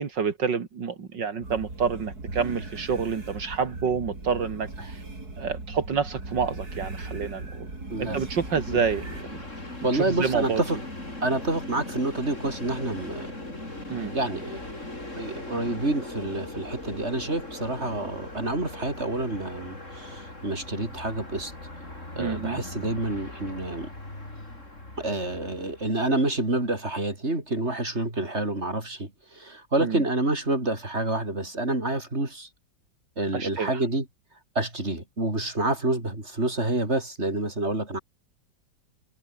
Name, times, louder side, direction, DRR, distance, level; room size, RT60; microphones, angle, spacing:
voice 1, 0.0-5.0 5.4-7.7 8.0-9.4 9.9-10.6 13.9-14.1 22.2-22.6 29.8-30.0 33.3-33.8, right 6 dB, 75° right, 2.8 m, -28 dB
sound 1, 1.4-9.2, right 2 dB, 55° right, 6.0 m, -38 dB
voice 2, 7.9-8.2 8.7-8.8 9.8-10.8 11.2-13.3 14.1-14.6 15.2-21.5 21.9-23.9 25.0-32.5 33.2-34.1 34.5-38.0, right 2 dB, 35° right, 6.1 m, -28 dB
Train, 8.1-26.2, left 2 dB, 40° left, 7.2 m, -39 dB
omnidirectional pair, 2.0 m